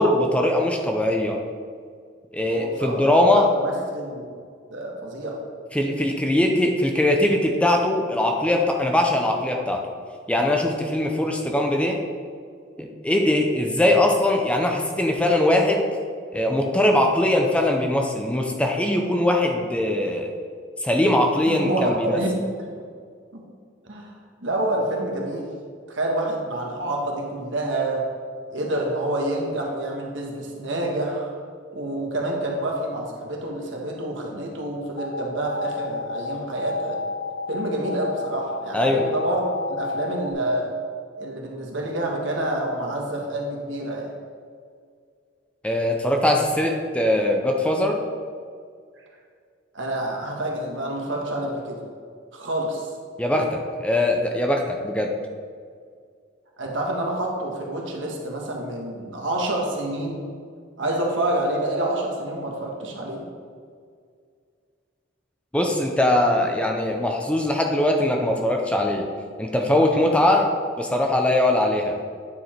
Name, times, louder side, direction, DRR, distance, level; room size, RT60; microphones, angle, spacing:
voice 1, 0.0-1.4 2.3-3.5 5.7-9.8 10.3-12.0 12.8-15.8 16.3-20.3 20.8-22.2 38.7-39.0 45.6-48.0 53.2-55.1 65.5-69.1 69.4-70.5 70.8-72.0, left 1 dB, 5° left, 2 dB, 0.6 m, -21 dB
voice 2, 2.5-4.2 4.7-5.4 21.5-22.3 23.3-23.4 23.8-24.1 24.4-25.5 25.9-28.0 28.5-31.3 31.7-37.0 37.5-40.7 41.2-44.1 49.7-51.8 52.3-52.9 56.6-60.2 60.8-63.2, right 1 dB, 80° right, 0 dB, 1.4 m, -28 dB
sound 1, 35.0-40.3, left 3 dB, 65° left, 1.0 m, -31 dB
9.4 x 4.7 x 4.4 m, 2.1 s
head